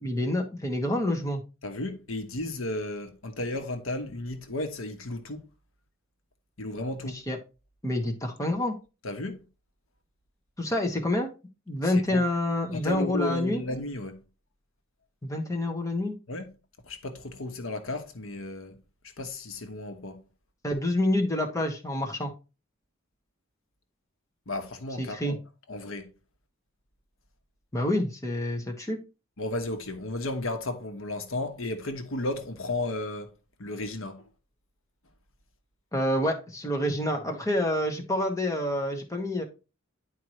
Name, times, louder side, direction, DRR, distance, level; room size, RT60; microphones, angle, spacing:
voice 1, 0.0-1.4 7.3-7.4 7.8-8.7 10.6-11.3 11.7-13.6 15.2-16.1 20.6-22.3 25.0-25.4 27.7-29.0 35.9-39.4, left 1 dB, 15° left, 1.3 m, -27 dB
voice 2, 1.6-5.5 6.6-7.2 9.0-9.5 11.8-12.2 12.7-14.2 16.3-16.6 16.8-18.8 19.2-20.3 24.5-25.4 25.7-26.1 29.4-33.3 33.6-34.3, left 2 dB, 80° left, 1.2 m, -34 dB
10.0 x 4.7 x 3.1 m
head